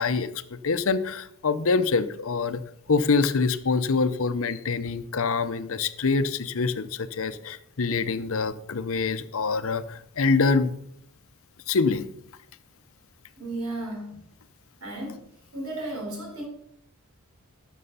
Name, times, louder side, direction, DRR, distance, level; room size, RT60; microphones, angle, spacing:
voice 1, 0.0-2.6 2.9-10.7 11.7-12.1, left 4 dB, 60° left, 12 dB, 0.7 m, -25 dB
voice 2, 13.4-14.2 14.8-15.2 15.5-16.5, right 1 dB, 65° right, 0 dB, 4.4 m, -34 dB
12.5 x 6.3 x 5.5 m, 0.72 s
head